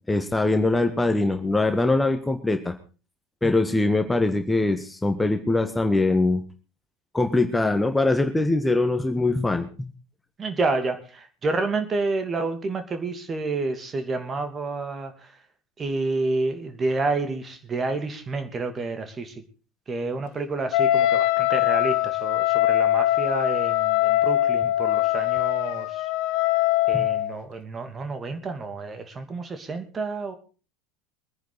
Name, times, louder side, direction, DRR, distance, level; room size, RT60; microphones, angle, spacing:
voice 1, 0.1-2.7 3.4-6.4 7.1-9.9 26.9-27.1, left 2 dB, 10° left, 6 dB, 1.5 m, -22 dB
voice 2, 10.4-15.1 15.8-19.3 19.9-26.0 26.9-30.4, right 3 dB, 30° right, 8 dB, 2.7 m, -29 dB
Wind instrument woodwind instrument, 20.7-27.3, left 15 dB, 60° left, 0.7 m, -22 dB
23.0 x 10.0 x 4.1 m, 0.35 s
hypercardioid pair, 75°, 0 cm